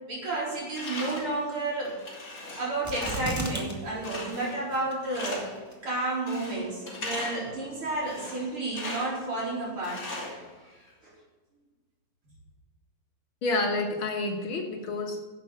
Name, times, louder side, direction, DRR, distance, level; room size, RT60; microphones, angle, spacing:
voice 1, 0.1-1.9 2.6-5.5 5.8-10.0 11.0-11.1, right 2 dB, 75° right, -5 dB, 4.9 m, -31 dB
Tools, 0.7-1.4 1.8-3.4 4.0-4.7 5.1-5.7 6.3-7.5 8.0-9.2 9.8-10.9, left 2 dB, 40° left, 2.9 m, -38 dB
sound 1, 2.8-3.7 4.0-4.1 4.7-5.2 5.7-5.8, right 1 dB, 10° right, 1.7 m, -33 dB
voice 2, 13.4-15.2, left 2 dB, 70° left, 2 dB, 2.1 m, -29 dB
11.0 x 7.7 x 7.5 m, 1.3 s
omnidirectional pair, 2.4 m